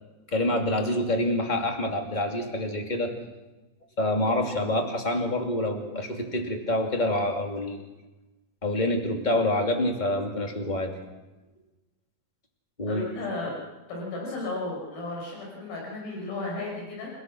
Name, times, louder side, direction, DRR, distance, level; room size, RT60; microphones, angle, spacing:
voice 1, 0.3-3.1 4.0-7.8 8.6-10.9 12.8-13.1, left 1 dB, 15° left, 2 dB, 2.0 m, -27 dB
voice 2, 12.9-13.5 13.9-17.1, left 2 dB, 75° left, -2 dB, 7.6 m, -34 dB
29.0 x 16.0 x 6.2 m, 1.1 s
omnidirectional pair, 4.3 m